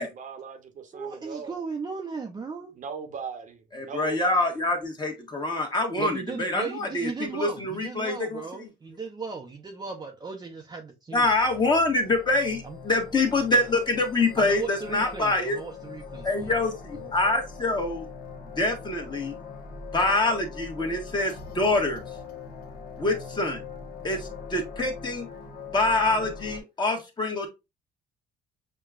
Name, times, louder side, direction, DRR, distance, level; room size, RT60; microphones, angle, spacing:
voice 1, 0.0-1.6 2.7-4.5, right 5 dB, 50° right, 0.9 m, -39 dB
voice 2, 0.9-2.7 6.0-11.3 12.6-12.8 14.4-16.5 16.9-17.1, right 4 dB, 25° right, 0.6 m, -36 dB
voice 3, 3.7-8.4 11.1-15.6 16.2-18.1 18.6-19.3 19.9-22.0 23.0-23.6 24.0-25.3 25.7-27.5, left 2 dB, 25° left, 1.2 m, -25 dB
sound 1, 11.2-26.6, left 5 dB, 60° left, 1.0 m, -42 dB
6.5 x 2.3 x 2.4 m
cardioid pair, 110°, 17 cm